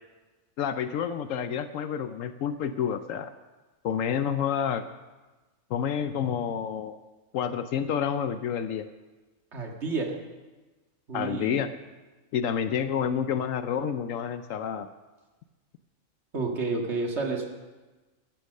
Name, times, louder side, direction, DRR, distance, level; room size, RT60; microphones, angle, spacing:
voice 1, 0.6-3.3 3.8-4.9 5.7-7.0 7.3-8.9 11.1-11.7 12.3-14.9, left 8 dB, 75° left, 11 dB, 1.0 m, -29 dB
voice 2, 9.5-10.1 11.1-11.6 16.3-17.5, right 3 dB, 55° right, 1 dB, 2.1 m, -30 dB
14.5 x 10.5 x 6.5 m, 1.2 s
omnidirectional pair, 1.4 m